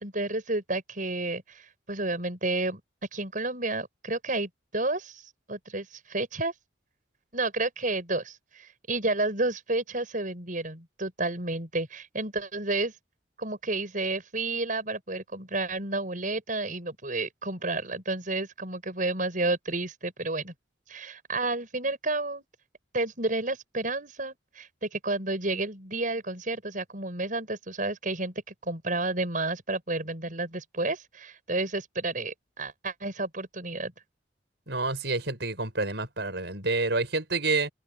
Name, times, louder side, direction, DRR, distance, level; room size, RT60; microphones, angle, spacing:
voice 1, 0.0-2.8 3.1-6.5 7.3-12.9 13.4-20.5 20.9-22.4 22.9-28.3 28.6-33.9, right 2 dB, 45° right, 7.3 m, -31 dB
voice 2, 34.7-37.7, right 3 dB, 65° right, 7.5 m, -28 dB
head